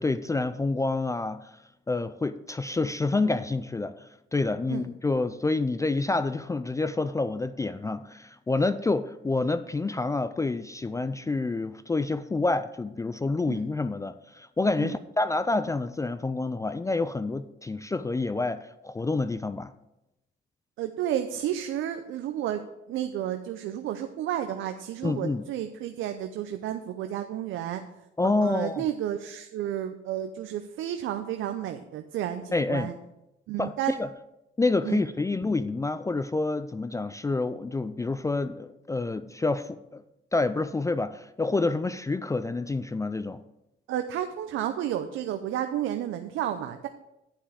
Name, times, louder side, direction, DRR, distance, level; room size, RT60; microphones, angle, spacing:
voice 1, 0.0-1.5 1.9-3.9 4.3-19.7 25.0-25.4 28.2-28.8 32.5-32.9 33.6-34.1 34.6-40.0 40.3-43.4, left 3 dB, 15° left, 13 dB, 0.3 m, -28 dB
voice 2, 20.8-22.6 22.9-27.8 28.2-32.9 33.5-33.9 34.8-35.0 43.9-46.9, right 11 dB, 85° right, 8 dB, 0.6 m, -31 dB
10.0 x 5.6 x 5.0 m, 0.91 s
cardioid pair, 90°, 20 cm